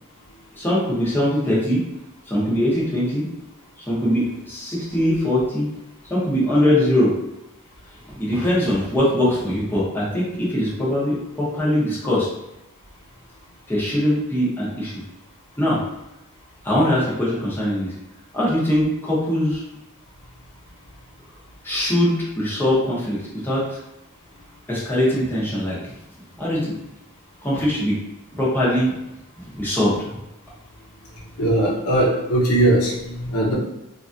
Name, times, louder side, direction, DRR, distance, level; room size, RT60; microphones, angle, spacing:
voice 1, 0.5-1.8 2.3-3.3 3.8-5.7 6.1-7.1 8.1-12.3 13.7-15.0 15.6-15.8 16.6-17.9 18.3-19.6 21.6-23.8 24.7-25.9 26.4-26.7 27.4-28.0 28.3-29.0 29.4-30.2, left 1 dB, 10° left, -8 dB, 0.9 m, -21 dB
voice 2, 31.4-33.5, right 1 dB, 80° left, -4 dB, 0.8 m, -19 dB
3.0 x 2.5 x 2.6 m, 0.92 s
head